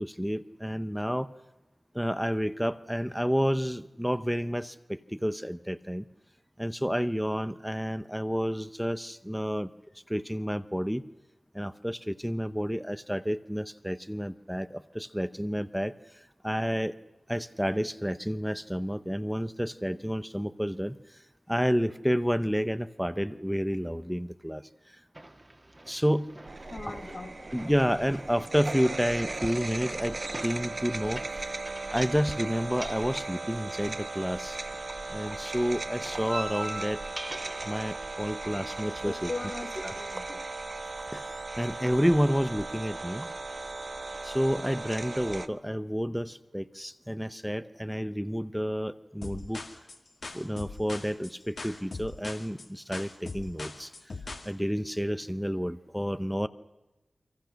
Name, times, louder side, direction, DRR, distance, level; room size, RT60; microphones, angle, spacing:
voice 1, 0.0-1.3 1.9-6.0 6.6-9.7 10.1-11.1 11.5-16.9 17.3-21.2 21.5-25.0 25.9-26.3 26.9-27.0 27.5-30.2 30.4-31.5 31.9-34.6 35.1-37.0 37.6-39.9 41.1-43.3 44.2-49.6 50.3-53.9 54.4-56.5, equal, ahead, 0.8 m, -30 dB
sound 1, 25.1-40.1, right 1 dB, 25° right, 1.8 m, -45 dB
sound 2, 26.5-45.5, right 3 dB, 50° right, 1.1 m, -37 dB
voice 2, 26.6-27.7 39.0-40.6, left 3 dB, 50° left, 1.1 m, -40 dB
sound 3, 49.2-54.5, left 3 dB, 70° left, 2.2 m, -40 dB
29.0 x 23.5 x 6.4 m
wide cardioid pair, 60°, 0 cm